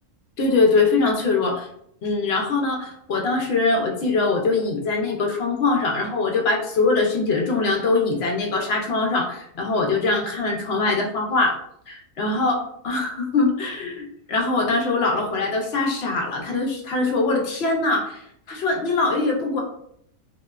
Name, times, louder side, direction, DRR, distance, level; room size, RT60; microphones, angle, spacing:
voice 1, 0.4-1.7 2.0-11.6 11.9-19.6, left 3 dB, 60° left, 0 dB, 0.7 m, -22 dB
2.7 x 2.1 x 2.2 m, 0.70 s
omnidirectional pair, 1.4 m